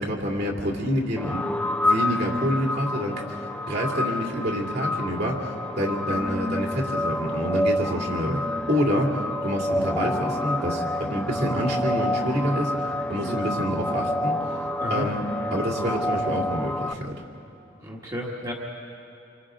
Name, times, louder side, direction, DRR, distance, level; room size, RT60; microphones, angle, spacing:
voice 1, 0.0-1.4 1.8-8.4 8.7-15.2 15.5-17.2, equal, 60° right, -1 dB, 2.8 m, -27 dB
sound 1, 1.2-16.9, left 1 dB, 5° left, 0.5 m, -28 dB
voice 2, 17.8-18.5, equal, 20° right, -3 dB, 1.6 m, -33 dB
28.0 x 25.0 x 3.8 m, 2.8 s
head